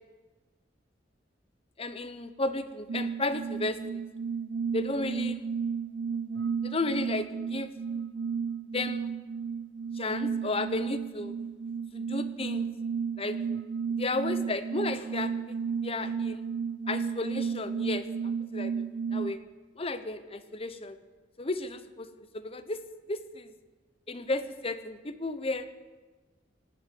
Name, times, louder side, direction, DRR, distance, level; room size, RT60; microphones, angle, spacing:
voice 1, 1.8-4.0 4.7-5.4 6.6-7.7 8.7-9.1 9.9-11.4 11.9-12.7 13.2-13.4 13.9-15.6 15.8-16.5 16.9-18.8 19.1-19.4 19.7-21.0 21.4-22.1 22.3-22.8 23.1-23.5 24.1-25.7, left 2 dB, 35° left, 11 dB, 1.0 m, -33 dB
sound 1, 2.9-19.4, right 6 dB, 75° right, 0.5 m, -33 dB
17.5 x 8.9 x 9.3 m, 1.3 s
head